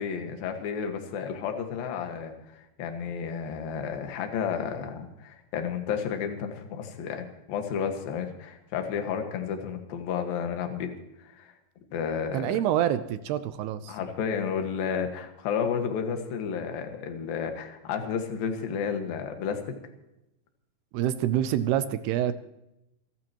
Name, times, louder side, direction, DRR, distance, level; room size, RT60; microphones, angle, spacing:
voice 1, 0.0-10.9 11.2-11.5 11.9-12.5 13.9-19.6, left 7 dB, 65° left, 5 dB, 3.1 m, -32 dB
voice 2, 12.3-14.0 20.9-22.4, right 11 dB, 80° right, 12 dB, 2.6 m, -26 dB
28.0 x 12.5 x 3.0 m, 0.88 s
omnidirectional pair, 5.0 m